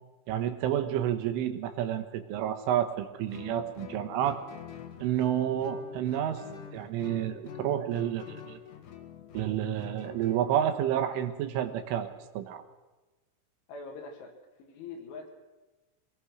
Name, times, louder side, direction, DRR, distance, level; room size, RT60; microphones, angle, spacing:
voice 1, 0.3-4.4 5.0-6.4 6.7-8.6 9.3-12.1 12.4-12.6, right 10 dB, 85° right, 7 dB, 3.8 m, -30 dB
Guitar, 3.3-10.8, left 8 dB, 60° left, 2.5 m, -46 dB
voice 2, 13.7-14.3 14.6-15.3, left 4 dB, 75° left, 2 dB, 4.7 m, -43 dB
25.0 x 19.5 x 6.4 m, 1.1 s
omnidirectional pair, 5.6 m